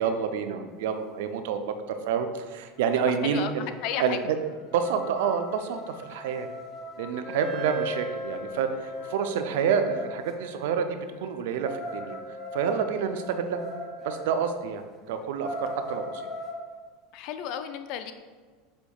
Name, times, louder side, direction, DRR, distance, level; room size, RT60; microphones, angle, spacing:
voice 1, 0.0-3.7 4.0-4.2 4.7-6.5 7.0-10.9 11.2-12.2 12.5-13.6 14.0-16.2, right 7 dB, 75° right, 8 dB, 0.4 m, -28 dB
sound 1, 2.4-2.5 2.8-3.1 3.4-10.3 11.6-14.4 14.8-14.9 15.3-16.6, equal, 30° left, 0.7 m, -40 dB
voice 2, 3.1-3.5 3.8-4.2 17.1-18.1, left 9 dB, 60° left, 9 dB, 0.4 m, -33 dB
Wind instrument woodwind instrument, 7.2-14.6, left 1 dB, 15° right, 0.7 m, -40 dB
6.1 x 3.4 x 2.2 m, 1.5 s
hypercardioid pair, 100°, 0 cm